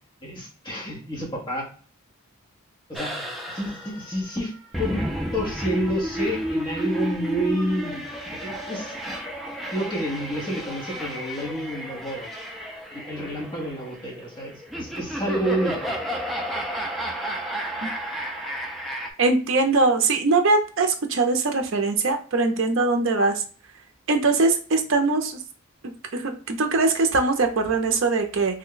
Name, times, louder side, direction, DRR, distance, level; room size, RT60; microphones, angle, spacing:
voice 1, 0.2-1.7 2.9-3.3 3.5-4.5 4.8-5.1 5.3-8.1 8.3-8.9 9.7-12.3 12.9-16.0, equal, 20° left, -2 dB, 0.9 m, -29 dB
sound 1, 2.9-19.1, equal, ahead, 0.3 m, -32 dB
voice 2, 19.2-23.4 24.1-25.4 26.1-28.6, right 3 dB, 55° right, 5 dB, 0.5 m, -21 dB
3.2 x 2.2 x 3.7 m, 0.41 s
head